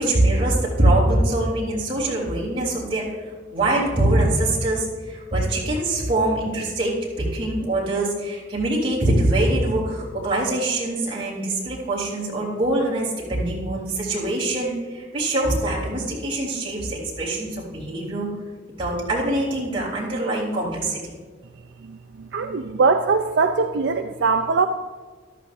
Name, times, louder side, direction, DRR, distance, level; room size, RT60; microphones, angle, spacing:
voice 1, 0.0-3.0 3.5-18.3 18.8-21.1, right 1 dB, 30° right, -5 dB, 3.3 m, -23 dB
voice 2, 21.9-24.7, right 4 dB, 65° right, 6 dB, 0.4 m, -21 dB
14.0 x 12.0 x 2.6 m, 1.5 s
head